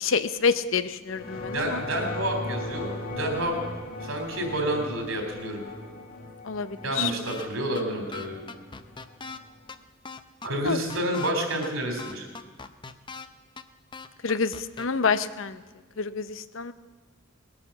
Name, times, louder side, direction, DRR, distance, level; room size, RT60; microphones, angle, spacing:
voice 1, 0.0-1.8 6.4-7.1 10.6-10.8 14.2-15.6 16.0-16.7, left 5 dB, 70° left, 13 dB, 0.7 m, -27 dB
sound 1, 1.1-9.7, left 2 dB, 45° left, 1.7 m, -38 dB
voice 2, 1.3-3.6 4.0-5.6 6.8-8.4 10.4-12.3, right 1 dB, 80° right, 3 dB, 3.5 m, -29 dB
sound 2, 7.3-7.5 7.7-7.8 8.1-9.4 9.7-9.8 10.0-11.3 11.6-11.7 12.0-13.3 13.6-13.7 13.9-14.9, left 4 dB, 25° left, 0.6 m, -39 dB
19.5 x 8.7 x 7.2 m, 1.4 s
head